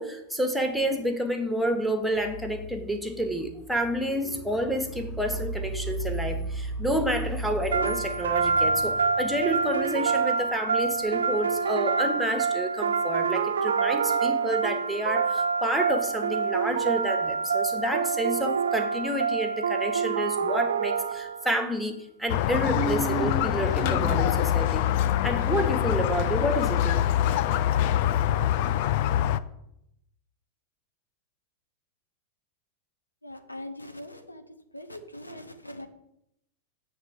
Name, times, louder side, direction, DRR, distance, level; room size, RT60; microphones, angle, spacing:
voice 1, 0.0-24.9 25.2-27.0, equal, ahead, 5 dB, 1.0 m, -29 dB
sound 1, 7.7-21.6, right 5 dB, 65° right, 0.3 m, -26 dB
Squeak, 22.3-29.4, left 11 dB, 50° left, 0.3 m, -24 dB
sound 2, 22.6-24.6, right 4 dB, 20° right, 0.6 m, -33 dB
voice 2, 33.2-34.4 34.7-35.9, left 1 dB, 85° left, 7 dB, 0.6 m, -41 dB
7.9 x 3.3 x 6.2 m, 0.79 s
figure-of-eight pair, 90°, 0 cm